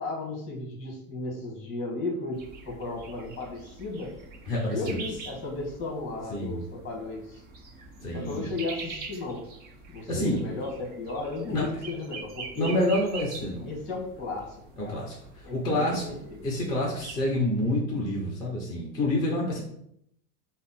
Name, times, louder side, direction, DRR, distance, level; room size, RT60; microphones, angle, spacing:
voice 1, 0.0-2.4 2.6-4.1 4.7-7.4 8.1-9.4 9.9-12.7 13.6-14.9 15.4-16.4, left 3 dB, 30° left, 0 dB, 1.4 m, -35 dB
sound 1, 2.3-17.3, right 4 dB, 25° right, 0.4 m, -44 dB
voice 2, 4.5-5.1 6.3-6.6 8.0-8.5 10.1-10.4 11.5-11.6 12.6-13.7 14.8-16.1 16.4-19.6, left 1 dB, 10° left, -4 dB, 0.8 m, -28 dB
5.5 x 2.1 x 4.1 m, 0.74 s
supercardioid pair, 155°, 43 cm